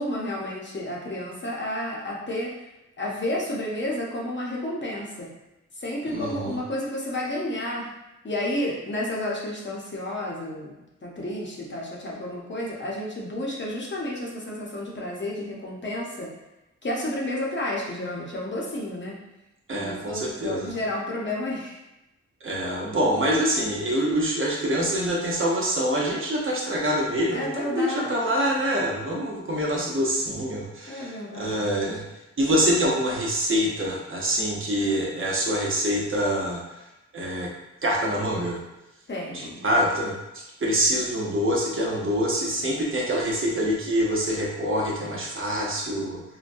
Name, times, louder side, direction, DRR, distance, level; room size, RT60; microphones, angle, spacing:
voice 1, 0.0-2.5 3.0-5.3 5.8-7.9 8.2-10.7 11.0-16.3 16.8-19.2 19.7-21.8 27.3-28.4 30.9-32.0 39.1-39.6, left 1 dB, 40° left, -4 dB, 0.9 m, -31 dB
voice 2, 6.0-6.6 19.7-20.7 22.4-32.1 32.4-36.6 37.1-37.5 37.8-38.6 39.3-40.1 40.6-46.2, equal, 45° right, -3 dB, 0.8 m, -25 dB
3.8 x 2.1 x 2.5 m, 0.95 s
cardioid pair, 65°, 30 cm